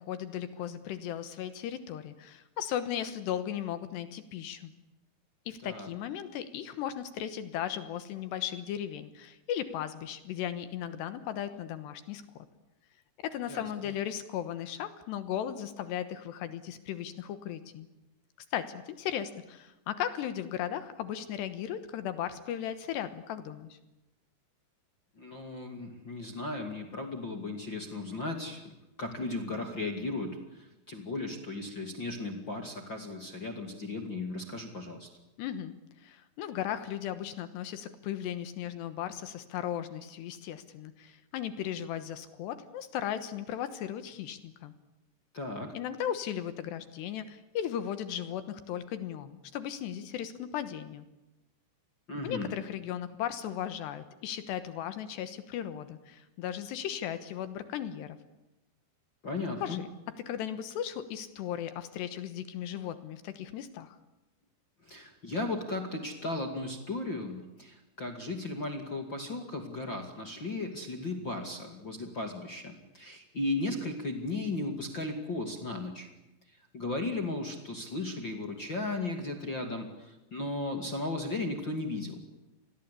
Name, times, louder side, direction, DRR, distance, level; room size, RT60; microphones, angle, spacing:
voice 1, 0.0-4.7 5.5-12.5 13.2-17.9 18.5-23.8 35.4-44.7 45.7-51.1 52.2-58.2 59.6-59.9 60.3-64.0, left 10 dB, 75° left, 11 dB, 3.3 m, -36 dB
voice 2, 25.2-28.7 29.0-35.1 45.3-45.8 52.1-52.5 59.2-59.8 64.8-76.1 76.5-82.2, left 2 dB, 35° left, 4 dB, 2.3 m, -36 dB
28.0 x 21.5 x 8.5 m, 0.97 s
omnidirectional pair, 5.2 m